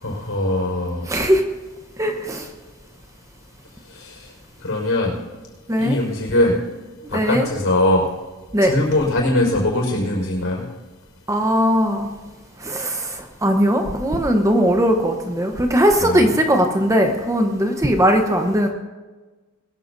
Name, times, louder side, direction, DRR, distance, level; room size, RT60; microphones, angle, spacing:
voice 1, 0.0-1.1 3.9-4.1 4.6-5.1 5.8-6.6 7.1-8.0 8.7-10.6 16.0-16.2, left 1 dB, 70° left, -1 dB, 5.0 m, -21 dB
voice 2, 1.1-1.4 2.0-2.5 5.7-6.0 7.1-7.5 8.5-8.7 11.3-12.1 12.6-18.7, equal, 15° right, 4 dB, 0.9 m, -19 dB
21.5 x 14.0 x 2.7 m, 1.3 s
head